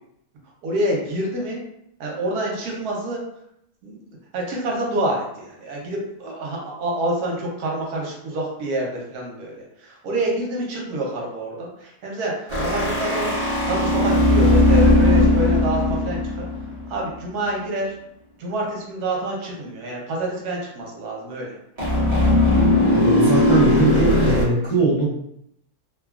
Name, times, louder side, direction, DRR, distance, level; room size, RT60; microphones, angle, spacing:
voice 1, 0.6-1.6 2.0-3.2 3.8-16.5 16.9-17.9 18.4-21.6, right 1 dB, 75° right, -2 dB, 1.2 m, -27 dB
sound 1, 12.5-17.0 21.8-24.4, left 1 dB, 35° right, 0.6 m, -18 dB
voice 2, 22.9-25.1, right 2 dB, 35° left, -10 dB, 0.4 m, -21 dB
2.9 x 2.3 x 2.3 m, 0.76 s
omnidirectional pair, 1.7 m